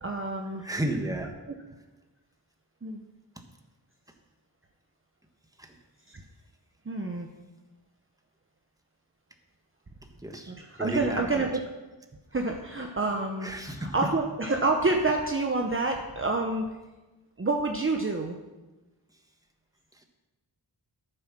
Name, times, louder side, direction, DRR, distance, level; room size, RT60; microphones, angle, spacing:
voice 1, 0.0-0.6 2.8-3.0 6.1-6.2 6.9-7.3 10.5-11.6 12.3-13.5 13.8-16.7 17.4-18.4, right 3 dB, 30° right, 2 dB, 1.0 m, -28 dB
voice 2, 0.6-1.4 5.6-5.7 10.2-10.5 10.8-11.5 13.4-13.9, right 1 dB, 10° right, 4 dB, 1.5 m, -32 dB
13.0 x 7.9 x 6.1 m, 1.1 s
wide cardioid pair, 100°, 42 cm